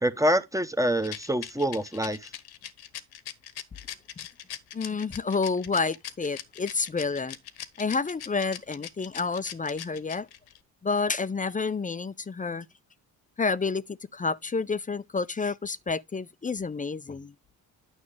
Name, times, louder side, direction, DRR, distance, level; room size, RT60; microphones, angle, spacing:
voice 1, 0.0-2.3, equal, 10° right, 0.9 m, -26 dB
Rattle, 1.0-10.6, left 11 dB, 75° left, 1.2 m, -40 dB
voice 2, 4.7-7.4 7.8-10.3 10.8-12.7 13.4-17.3, left 4 dB, 20° left, 0.5 m, -29 dB
9.6 x 6.3 x 3.3 m
cardioid pair, 90°, 38 cm